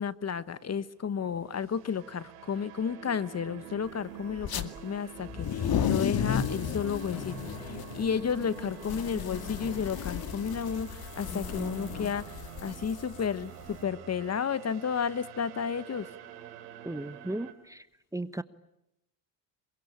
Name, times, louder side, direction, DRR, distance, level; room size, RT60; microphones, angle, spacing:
voice 1, 0.0-16.1, left 7 dB, 35° left, 15 dB, 1.3 m, -32 dB
sound 1, 1.3-17.5, right 10 dB, 90° right, 3.2 m, -47 dB
sound 2, 4.4-4.6 5.2-13.7, left 8 dB, 50° left, 2.4 m, -34 dB
sound 3, 7.1-12.1, left 3 dB, 90° left, 3.2 m, -43 dB
voice 2, 16.8-17.9 18.1-18.4, right 1 dB, 5° right, 13 dB, 1.2 m, -35 dB
27.0 x 24.0 x 8.8 m, 0.85 s
supercardioid pair, 75°, 47 cm